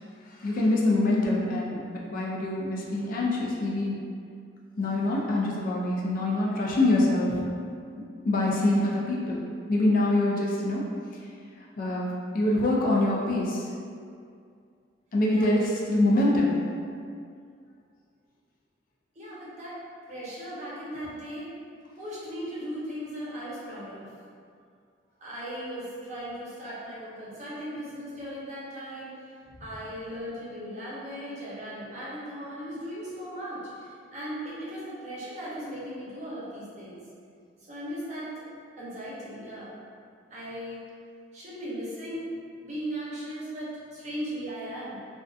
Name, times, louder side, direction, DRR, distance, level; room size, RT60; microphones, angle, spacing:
voice 1, 0.2-1.8 2.1-4.0 4.8-7.5 8.2-10.9 11.8-13.7 15.1-16.6, left 1 dB, 50° left, -4 dB, 0.4 m, -25 dB
voice 2, 19.2-19.8 20.1-21.5 22.0-24.1 25.2-29.1 29.6-37.0 37.7-38.3 38.8-39.7 40.3-40.8 41.3-42.3 42.6-45.1, equal, 40° right, -8 dB, 0.7 m, -37 dB
2.5 x 2.3 x 2.3 m, 2.3 s
head